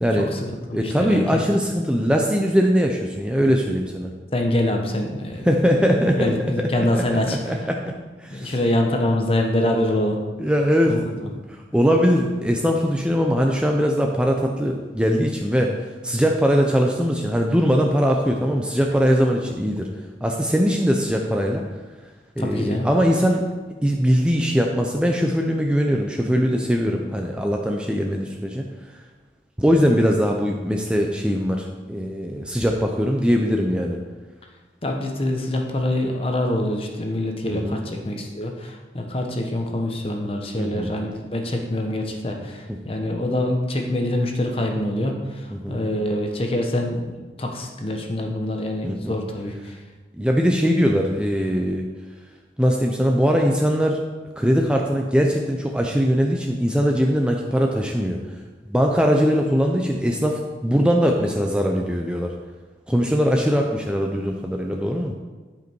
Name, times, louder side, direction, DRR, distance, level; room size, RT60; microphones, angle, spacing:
voice 1, 0.1-1.2 4.3-5.5 6.2-7.4 8.3-10.2 10.9-11.3 22.4-22.9 34.8-49.7, left 1 dB, 30° left, 2 dB, 1.0 m, -25 dB
voice 2, 0.7-4.1 5.5-7.0 7.4-7.9 8.2-8.6 9.6-9.8 10.4-15.7 16.0-19.9 20.2-21.6 22.4-23.5 23.8-28.6 29.6-34.0 37.5-37.8 40.6-40.9 45.5-45.8 48.8-49.2 50.2-51.9 52.6-54.0 54.4-58.2 58.7-62.3 62.9-65.1, equal, 5° right, 1 dB, 0.5 m, -21 dB
11.0 x 5.2 x 4.5 m, 1.3 s
head